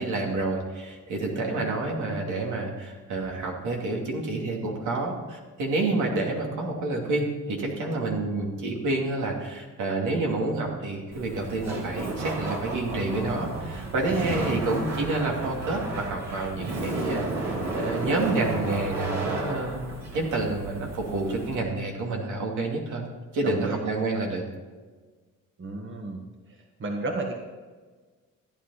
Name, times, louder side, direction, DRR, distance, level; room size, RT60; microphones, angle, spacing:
voice 1, 0.0-19.8 20.1-23.0 23.3-24.4, right 2 dB, 80° right, 0 dB, 2.7 m, -28 dB
voice 2, 1.3-1.6 14.2-14.6 23.4-23.8 25.6-26.2 26.8-27.3, right 2 dB, 40° right, 2 dB, 1.5 m, -33 dB
Laughter, 11.1-21.6, right 2 dB, 60° right, 3.4 m, -33 dB
14.5 x 9.8 x 4.2 m, 1.4 s
cardioid pair, 90°, 30 cm